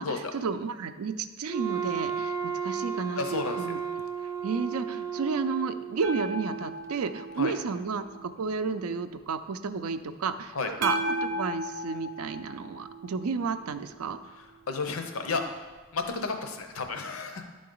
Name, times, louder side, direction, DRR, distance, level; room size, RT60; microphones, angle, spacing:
voice 1, 0.0-3.8 4.4-14.2, right 5 dB, 90° right, 10 dB, 0.4 m, -32 dB
Wind instrument woodwind instrument, 1.5-6.2, right 7 dB, 15° right, 0.4 m, -33 dB
voice 2, 3.2-3.6 7.4-7.5 10.5-10.7 14.7-15.4 15.9-17.6, left 4 dB, 80° left, 5 dB, 0.7 m, -32 dB
sound 1, 6.0-8.9 10.8-14.0 16.9-17.0, right 1 dB, 40° right, 0.7 m, -35 dB
11.5 x 3.8 x 3.8 m, 1.3 s
head